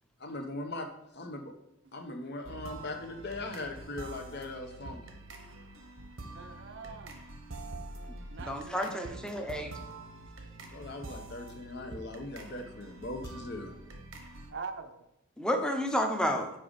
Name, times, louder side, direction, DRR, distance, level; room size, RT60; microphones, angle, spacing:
voice 1, 0.2-0.9 1.2-1.5 1.9-5.0 10.7-13.7, left 2 dB, 55° left, 5 dB, 0.8 m, -40 dB
sound 1, 2.4-14.5, right 2 dB, 85° right, 1.1 m, -46 dB
voice 2, 6.3-7.2 8.3-9.7 14.5-15.0, right 4 dB, 60° right, 8 dB, 0.6 m, -44 dB
voice 3, 8.4-9.8 15.4-16.5, equal, 5° left, 4 dB, 0.7 m, -31 dB
5.6 x 5.0 x 5.1 m, 0.84 s
head